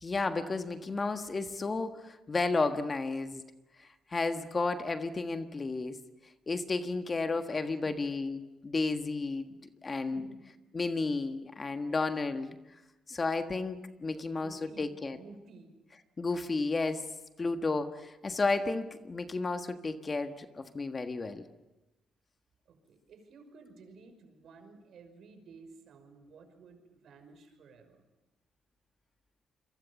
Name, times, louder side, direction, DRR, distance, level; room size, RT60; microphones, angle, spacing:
voice 1, 0.0-3.4 4.1-6.0 6.5-9.5 9.8-10.2 10.7-12.6 13.1-15.2 16.2-17.0 17.4-21.4, left 3 dB, 30° left, 7 dB, 1.5 m, -32 dB
voice 2, 10.1-10.4 11.7-12.1 14.4-15.7 22.7-28.0, right 4 dB, 65° right, 7 dB, 5.7 m, -54 dB
28.0 x 23.5 x 7.2 m, 1.0 s
cardioid pair, 90°, 0 cm